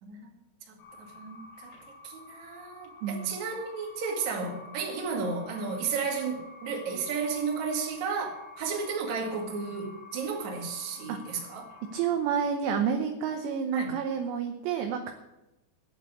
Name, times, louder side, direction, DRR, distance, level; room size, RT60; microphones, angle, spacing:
voice 1, 0.7-1.7 2.0-11.7 13.7-13.9, right 5 dB, 50° right, 1 dB, 2.7 m, -33 dB
sound 1, 0.8-12.1, left 3 dB, 85° left, 4.9 m, -49 dB
voice 2, 3.0-3.4 11.1-11.2 11.9-15.1, right 7 dB, 75° right, 5 dB, 2.8 m, -29 dB
10.5 x 8.0 x 8.3 m, 0.95 s
omnidirectional pair, 5.6 m